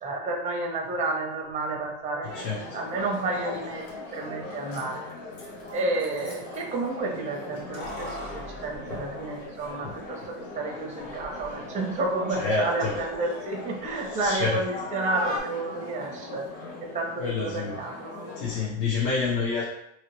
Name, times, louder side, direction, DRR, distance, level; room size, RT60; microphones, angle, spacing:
voice 1, 0.0-3.9 4.1-5.3 5.7-16.5 16.8-18.3, right 2 dB, 20° right, 1 dB, 0.6 m, -31 dB
sound 1, 2.2-18.7, left 2 dB, 90° left, 1.1 m, -41 dB
Keys jangling, 3.5-3.6 3.8-3.9 4.5-6.6 7.5-9.7 10.0-10.1 11.0-11.5 11.9-14.4 14.7-15.4, left 1 dB, 70° left, 1.2 m, -40 dB
voice 2, 12.2-12.9 14.0-14.8 17.2-17.8 18.4-19.6, left 4 dB, 50° left, -4 dB, 0.8 m, -28 dB
2.9 x 2.9 x 3.0 m, 0.80 s
supercardioid pair, 135°, 39 cm